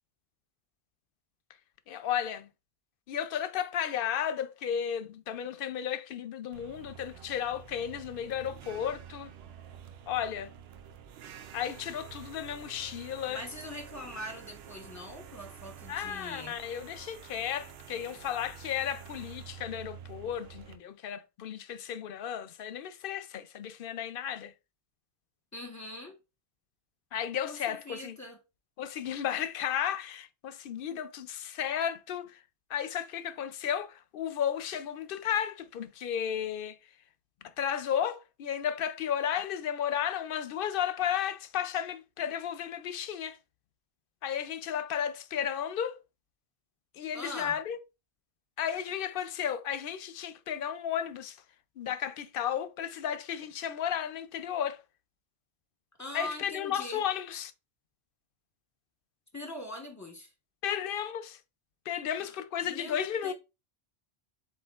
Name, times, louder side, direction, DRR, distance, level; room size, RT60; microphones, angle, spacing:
voice 1, 1.9-2.5 3.1-9.3 10.1-10.5 11.5-13.4 15.9-24.5 27.1-28.2 28.8-32.4 32.7-36.8 37.4-43.4 44.2-46.0 46.9-47.8 48.6-51.4 51.8-54.8 56.1-57.5 60.6-61.4 61.9-63.3, left 9 dB, 65° left, 0.7 m, -33 dB
sound 1, 6.5-20.7, right 8 dB, 70° right, 0.8 m, -49 dB
voice 2, 13.3-16.6 25.5-26.2 27.4-28.4 47.1-47.6 56.0-57.0 59.3-60.3 62.2-63.3, left 1 dB, 15° left, 0.9 m, -42 dB
7.7 x 2.9 x 2.4 m
omnidirectional pair, 1.1 m